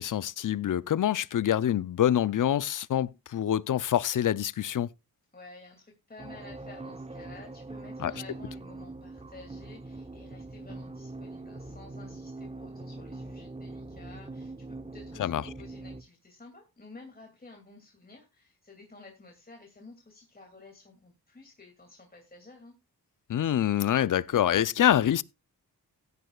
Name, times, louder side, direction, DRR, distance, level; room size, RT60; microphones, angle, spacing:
voice 1, 0.0-4.9 8.0-8.1 15.2-15.4 23.3-25.2, left 10 dB, 55° left, 0.6 m, -26 dB
voice 2, 5.3-22.8, left 3 dB, 25° left, 2.6 m, -52 dB
sound 1, 6.2-16.0, right 2 dB, 15° right, 0.9 m, -42 dB
16.0 x 9.5 x 2.4 m
cardioid pair, 65°, 37 cm